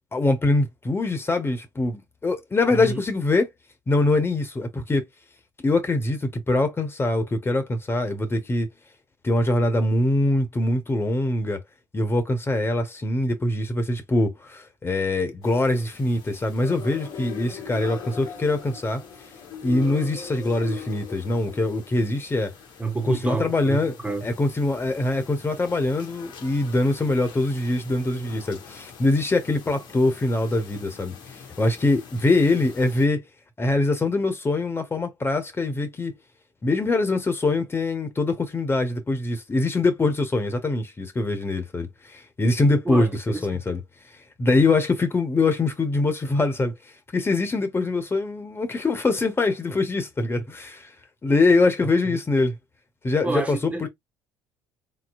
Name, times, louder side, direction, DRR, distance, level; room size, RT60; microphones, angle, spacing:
voice 1, 0.1-3.5 3.9-5.0 5.6-8.7 9.2-11.6 11.9-19.0 19.6-22.5 23.1-23.9 24.2-31.1 31.6-33.2 33.6-36.1 36.6-43.1 43.4-43.8 44.4-46.7 47.1-50.9 51.2-52.5 53.0-53.9, left 2 dB, 25° left, 1.2 m, -23 dB
voice 2, 2.7-3.0 22.8-24.3 42.8-43.6 51.8-51.9 53.2-53.9, right 3 dB, 15° right, 1.1 m, -29 dB
sound 1, 15.4-33.1, left 7 dB, 50° left, 1.5 m, -42 dB
3.8 x 2.9 x 2.3 m
hypercardioid pair, 60°, 10 cm